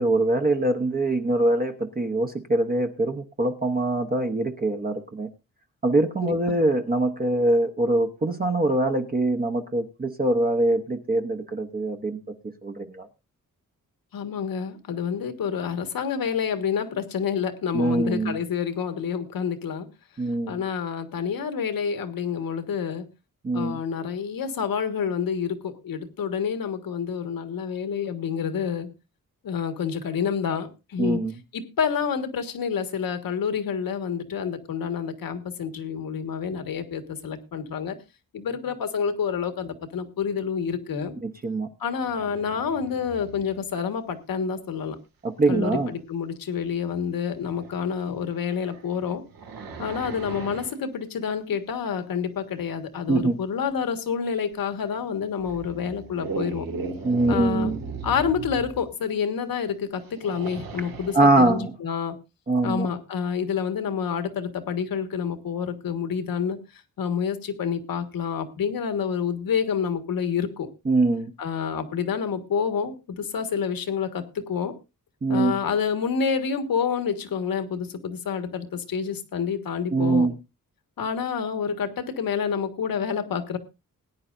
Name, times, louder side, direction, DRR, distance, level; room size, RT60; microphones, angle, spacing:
voice 1, 0.0-5.3 5.8-12.2 12.6-13.1 17.7-18.4 20.2-20.6 23.4-23.8 31.0-31.4 41.2-41.7 45.2-45.9 53.1-53.4 57.0-57.8 61.1-61.7 62.5-62.9 70.9-71.3 75.2-75.6 79.9-80.3, right 2 dB, 25° right, 5 dB, 0.8 m, -23 dB
voice 2, 6.2-6.6 14.1-19.9 20.5-23.0 23.5-28.9 29.4-31.2 31.5-37.9 38.3-41.1 41.8-44.9 45.5-49.2 49.8-56.7 57.3-57.7 58.0-62.2 62.6-66.6 67.0-70.7 71.4-74.7 75.3-80.3 81.0-83.6, left 7 dB, 85° left, 8 dB, 1.7 m, -28 dB
sound 1, 42.0-43.6 46.6-46.7 47.5-47.7 48.3-50.7 54.5-54.6 55.4-58.8 60.0-61.3, right 4 dB, 85° right, 2.2 m, -37 dB
20.0 x 10.0 x 2.6 m, 0.26 s
wide cardioid pair, 165°, 34 cm